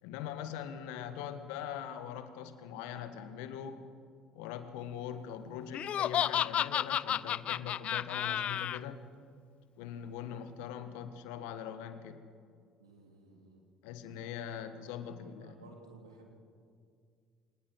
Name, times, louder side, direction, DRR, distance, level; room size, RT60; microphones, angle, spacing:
voice 1, 0.0-3.8 4.3-9.0 9.8-12.2 13.8-15.5, left 9 dB, 70° left, 10 dB, 1.5 m, -42 dB
Laughter, 5.7-8.8, left 10 dB, 50° left, 0.4 m, -31 dB
voice 2, 12.8-13.6 15.4-16.4, right 3 dB, 90° right, 1 dB, 3.2 m, -56 dB
23.5 x 19.0 x 6.2 m, 2.2 s
hypercardioid pair, 60°, 3 cm